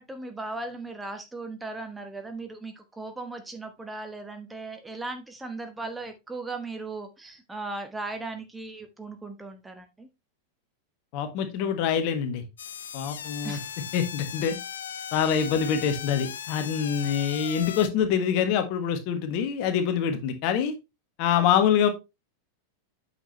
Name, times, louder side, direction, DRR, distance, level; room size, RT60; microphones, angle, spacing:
voice 1, 0.0-10.1 13.4-13.6, right 3 dB, 10° right, 6 dB, 1.1 m, -37 dB
voice 2, 11.1-12.4 12.9-13.6 13.9-14.6 15.1-20.7 21.2-21.9, left 8 dB, 45° left, 8 dB, 1.5 m, -25 dB
sound 1, 12.6-17.9, left 8 dB, 65° left, 0.5 m, -37 dB
8.8 x 6.2 x 3.0 m, 0.24 s
figure-of-eight pair, 90°, 0 cm